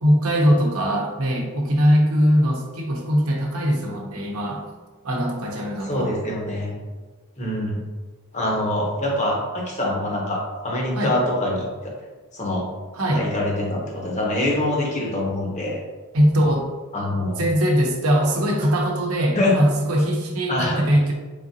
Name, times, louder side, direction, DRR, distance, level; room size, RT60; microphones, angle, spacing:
voice 1, 0.0-4.7 5.0-6.1 10.9-11.2 12.9-13.3 16.1-16.7 17.4-21.1, equal, 75° right, -1 dB, 0.8 m, -21 dB
voice 2, 5.8-6.7 7.4-7.8 8.3-11.9 12.3-12.7 13.1-15.8 16.9-17.4 19.3-19.6 20.5-20.8, left 1 dB, 30° left, -2 dB, 0.8 m, -24 dB
3.7 x 3.6 x 2.7 m, 1.3 s
head